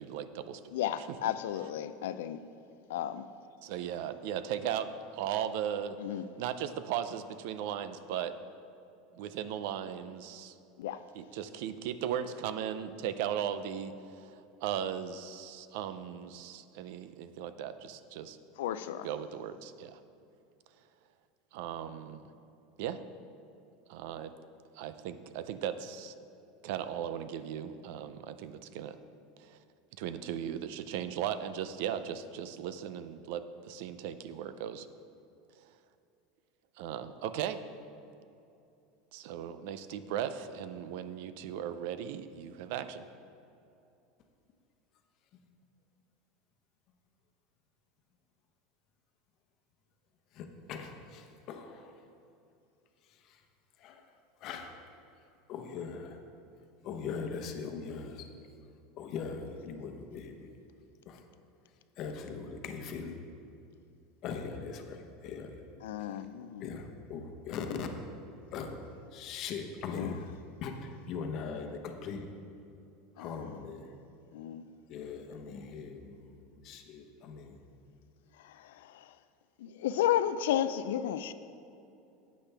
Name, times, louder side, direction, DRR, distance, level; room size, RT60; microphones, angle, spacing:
voice 1, 0.0-0.6 3.6-6.0 6.4-8.3 9.1-10.5 11.1-18.4 19.0-20.0 21.5-22.2 22.8-23.0 23.9-24.3 24.7-26.1 26.6-29.0 29.4-29.6 30.0-34.9 36.8-37.6 39.1-43.0, right 9 dB, 65° right, 12 dB, 0.5 m, -37 dB
voice 2, 0.7-2.4 2.9-3.3 6.0-6.2 10.8-11.0 18.6-19.1 65.8-66.8 67.7-67.9 69.9-70.2 73.2-73.6 74.3-74.7 78.4-79.2 79.6-81.3, left 11 dB, 90° left, 12 dB, 0.4 m, -33 dB
voice 3, 50.3-51.9 53.3-53.4 53.8-54.0 54.4-54.7 55.5-56.2 56.8-58.3 59.0-60.5 61.1-61.2 62.0-63.2 64.2-65.6 66.6-67.9 68.5-68.8 69.1-70.2 70.6-72.3 73.2-73.9 74.9-77.6, left 5 dB, 45° left, 5 dB, 0.9 m, -40 dB
11.5 x 8.4 x 3.4 m, 2.7 s
supercardioid pair, 145°, 0 cm